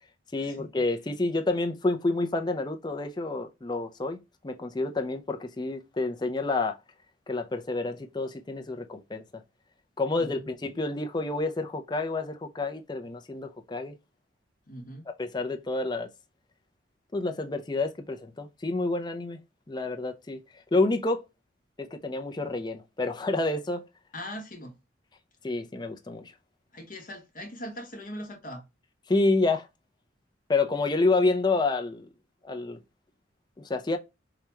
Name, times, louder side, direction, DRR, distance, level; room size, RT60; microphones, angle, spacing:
voice 1, 0.3-4.2 4.4-6.8 7.3-9.4 10.0-14.0 15.1-16.1 17.1-19.4 19.7-20.4 20.7-21.2 21.8-23.8 25.4-26.3 29.1-29.7 30.5-32.1 32.4-32.8 33.6-34.0, left 3 dB, 20° left, 0.4 m, -28 dB
voice 2, 14.7-15.1 24.1-24.7 26.7-28.6, equal, 45° left, 0.9 m, -40 dB
4.8 x 2.2 x 2.9 m
head